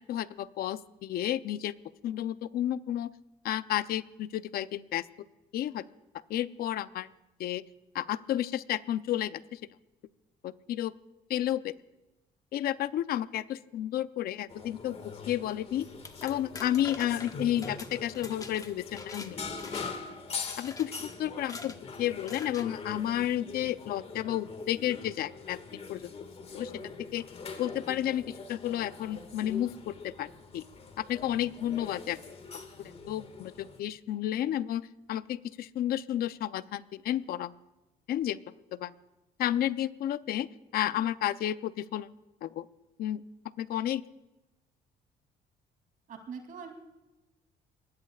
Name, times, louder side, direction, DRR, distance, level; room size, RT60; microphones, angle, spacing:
voice 1, 0.1-1.7 2.0-3.1 3.4-5.0 5.5-5.8 6.3-7.1 7.4-7.6 7.9-9.6 10.4-10.9 11.3-11.7 12.5-15.0 15.3-15.9 16.2-19.4 20.6-26.1 26.5-26.7 27.1-27.2 27.6-30.3 30.5-30.6 31.0-32.2 32.8-37.5 38.1-38.4 38.7-38.9 39.4-40.5 40.7-42.1 42.4-42.7 43.0-43.2 43.6-44.0, left 12 dB, 65° left, 14 dB, 0.7 m, -31 dB
sound 1, 14.5-33.8, left 4 dB, 35° left, 1.9 m, -43 dB
sound 2, 15.8-19.3 19.6-20.1 20.5-20.9 21.4-21.8 22.3-22.7, left 3 dB, 20° left, 1.2 m, -45 dB
voice 2, 46.1-46.7, right 6 dB, 55° right, 5 dB, 3.0 m, -42 dB
26.0 x 20.0 x 2.4 m, 1.0 s
cardioid pair, 110°, 17 cm